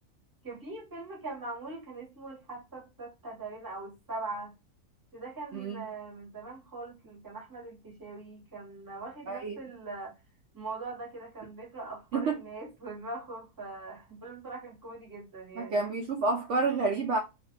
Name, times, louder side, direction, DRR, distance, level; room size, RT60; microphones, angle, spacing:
voice 1, 0.4-4.5 5.1-10.1 10.5-15.8, right 3 dB, 15° right, 1.0 m, -42 dB
voice 2, 5.5-5.8 9.3-9.6 12.1-12.4 15.6-17.2, right 3 dB, 60° right, 0.8 m, -29 dB
2.5 x 2.5 x 3.9 m
omnidirectional pair, 1.7 m